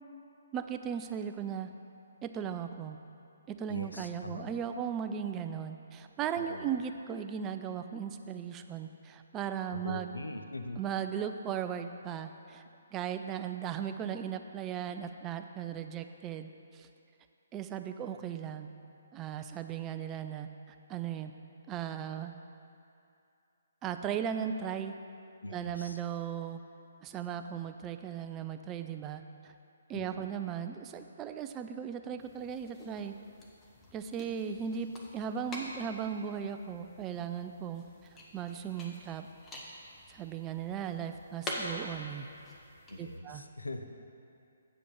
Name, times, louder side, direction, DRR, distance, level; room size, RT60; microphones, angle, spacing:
voice 1, 0.5-1.7 2.2-3.0 3.5-10.1 10.8-12.6 12.9-16.9 17.5-18.7 19.1-20.5 20.9-21.3 21.7-22.3 23.8-24.9 25.5-26.6 27.0-29.5 29.9-33.1 33.9-37.8 38.3-39.3 40.1-42.3 43.0-43.4, right 8 dB, 20° right, 8 dB, 0.4 m, -37 dB
voice 2, 3.7-4.5 6.4-6.8 9.7-10.8 25.4-26.0 29.9-30.2 42.9-43.8, left 1 dB, 90° left, 7 dB, 0.6 m, -41 dB
sound 1, 32.2-43.2, left 1 dB, 15° left, 1.1 m, -46 dB
8.4 x 5.1 x 6.6 m, 2.6 s
figure-of-eight pair, 140°, 0 cm